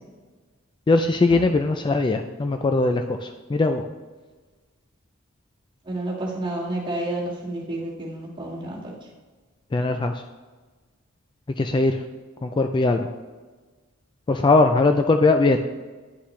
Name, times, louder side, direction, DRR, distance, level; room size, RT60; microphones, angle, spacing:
voice 1, 0.9-3.9 9.7-10.1 11.6-12.0 12.4-13.0 14.3-15.6, left 3 dB, 25° left, 6 dB, 0.3 m, -20 dB
voice 2, 5.9-8.8, right 1 dB, 25° right, -4 dB, 1.8 m, -30 dB
9.7 x 5.9 x 3.2 m, 1.3 s
head